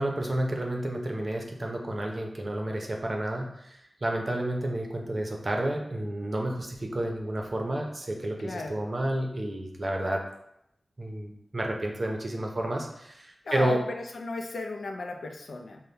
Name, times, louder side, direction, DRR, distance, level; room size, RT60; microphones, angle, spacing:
voice 1, 0.0-10.2 11.0-13.8, right 1 dB, 40° right, 1 dB, 0.7 m, -30 dB
voice 2, 8.4-8.8 13.5-13.8 14.1-15.8, left 3 dB, 80° left, 4 dB, 0.5 m, -35 dB
5.4 x 2.2 x 3.3 m, 0.78 s
wide cardioid pair, 95°, 0 cm